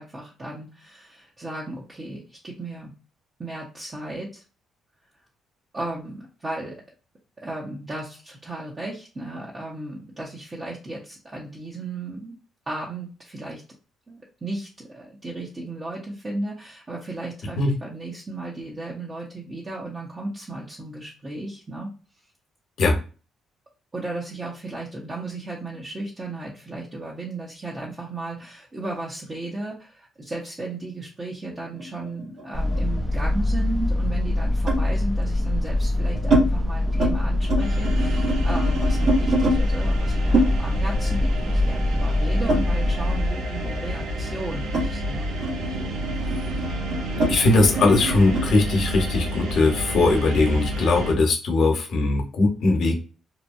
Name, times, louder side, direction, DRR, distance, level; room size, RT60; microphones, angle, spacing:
voice 1, 0.0-2.9 3.4-4.4 5.7-6.8 7.4-12.3 12.7-13.6 14.1-21.9 23.9-45.3, right 2 dB, 30° right, -4 dB, 0.8 m, -35 dB
sound 1, 31.8-33.4 34.7-34.9 35.7-36.5 36.8-37.2 37.4-39.6 40.3-43.2 43.5-48.5, right 1 dB, 60° right, 1.4 m, -26 dB
sound 2, 32.5-43.3, left 1 dB, 10° left, 0.5 m, -23 dB
sound 3, 37.6-51.1, equal, 90° right, 0.7 m, -30 dB
voice 2, 47.3-53.1, left 3 dB, 65° left, 2 dB, 1.0 m, -20 dB
2.8 x 2.2 x 2.6 m, 0.34 s
cardioid pair, 80°, 0 cm